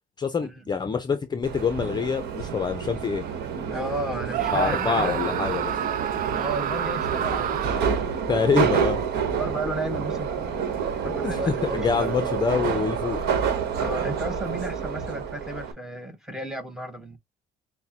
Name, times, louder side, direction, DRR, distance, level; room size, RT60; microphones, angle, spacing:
voice 1, 0.2-3.3 4.5-5.7 8.3-9.0 11.0-11.4 11.7-13.2, left 5 dB, 25° left, 0.6 m, -26 dB
Subway metro underground, 1.4-15.7, right 7 dB, 75° right, 1.1 m, -28 dB
voice 2, 3.7-5.3 6.3-7.9 9.4-12.1 13.8-17.2, right 1 dB, 5° right, 1.1 m, -33 dB
Screaming, 4.3-8.1, right 10 dB, 55° right, 0.5 m, -29 dB
6.4 x 2.2 x 2.9 m
cardioid pair, 110°, 17 cm